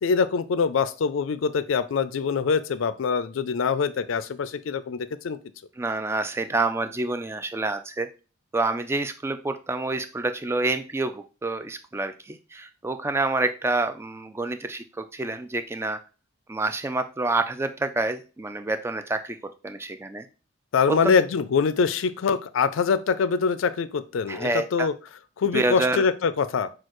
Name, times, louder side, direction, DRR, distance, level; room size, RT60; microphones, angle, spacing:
voice 1, 0.0-5.4 20.7-24.9 25.4-26.7, left 5 dB, 75° left, 14 dB, 0.4 m, -24 dB
voice 2, 5.8-8.1 8.5-16.0 16.5-19.4 19.6-20.3 20.9-21.1 24.3-24.9 25.5-26.0, right 2 dB, 10° right, 9 dB, 0.3 m, -27 dB
6.3 x 2.4 x 3.0 m, 0.33 s
head